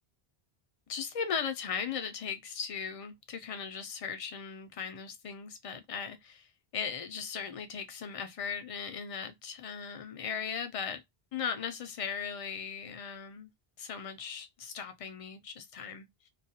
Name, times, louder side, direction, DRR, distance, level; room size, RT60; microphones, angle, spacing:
voice 1, 0.9-6.5 6.7-11.0 11.3-13.5 13.8-16.3, left 6 dB, 50° left, 0.4 m, -38 dB
2.3 x 2.2 x 2.7 m
omnidirectional pair, 1.1 m